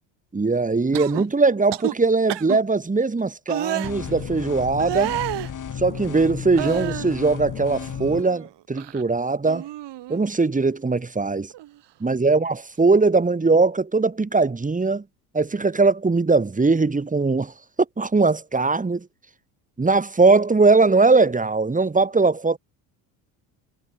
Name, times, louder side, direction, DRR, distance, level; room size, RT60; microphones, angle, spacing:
voice 1, 0.3-5.2 5.8-9.7 10.1-11.5 12.0-15.0 15.3-17.5 18.0-19.1 19.8-22.6, right 3 dB, 15° right, 1.9 m, -20 dB
sound 1, 0.9-1.3 1.7-1.9 2.3-2.6 3.5-3.9 4.8-5.5 6.6-7.2 7.6-8.5 8.8-9.0 9.5-10.2 11.5-11.7, right 14 dB, 65° right, 2.0 m, -30 dB
sound 2, 3.8-8.2, left 8 dB, 45° left, 2.7 m, -33 dB
supercardioid pair, 80°, 44 cm